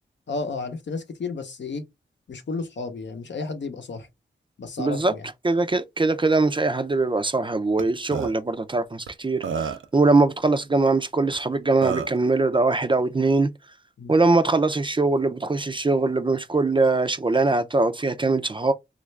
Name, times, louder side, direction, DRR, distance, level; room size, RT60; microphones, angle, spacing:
voice 1, 0.3-1.8 2.3-4.1 4.6-5.3 14.0-14.2, left 4 dB, 65° left, 0.7 m, -32 dB
voice 2, 4.8-5.1 5.4-13.5 14.1-18.7, right 3 dB, 25° right, 0.4 m, -22 dB
Burping eructation, 7.8-7.9 8.1-8.3 9.1-9.2 9.4-9.9 11.3-11.4 11.8-12.2, right 6 dB, 90° right, 0.5 m, -28 dB
3.2 x 2.4 x 3.2 m
cardioid pair, 60°, 20 cm